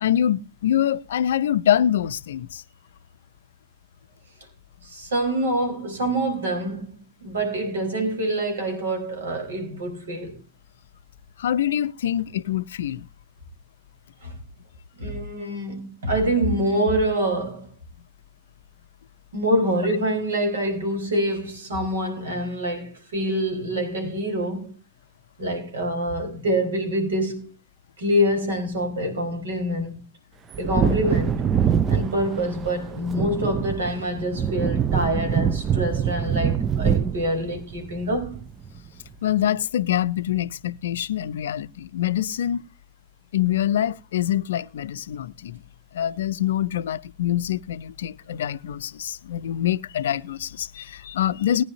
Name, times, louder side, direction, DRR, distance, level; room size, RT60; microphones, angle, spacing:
voice 1, 0.0-2.6 11.4-13.1 39.2-42.6 43.3-45.6 45.9-51.6, left 11 dB, 60° left, 0.5 m, -25 dB
voice 2, 4.8-6.9 7.2-10.4 14.2-14.4 15.0-17.7 19.3-24.7 25.4-27.5 28.0-30.0 30.6-31.5 31.9-38.4, right 1 dB, 65° right, 4.4 m, -25 dB
Wind / Thunder, 30.5-38.8 39.1-39.2, right 7 dB, 25° right, 0.6 m, -24 dB
20.0 x 10.0 x 2.7 m
figure-of-eight pair, 90°, 0 cm